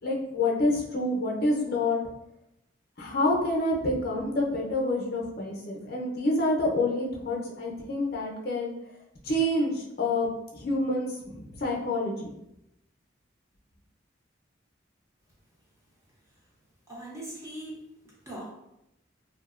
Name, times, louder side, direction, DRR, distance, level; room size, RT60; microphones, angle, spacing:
voice 1, 0.0-2.0 3.0-8.7 9.2-10.3 10.5-12.3, left 1 dB, 55° left, -2 dB, 0.5 m, -27 dB
voice 2, 16.9-18.5, right 1 dB, 15° right, -5 dB, 0.6 m, -41 dB
2.7 x 2.1 x 2.4 m, 0.85 s
head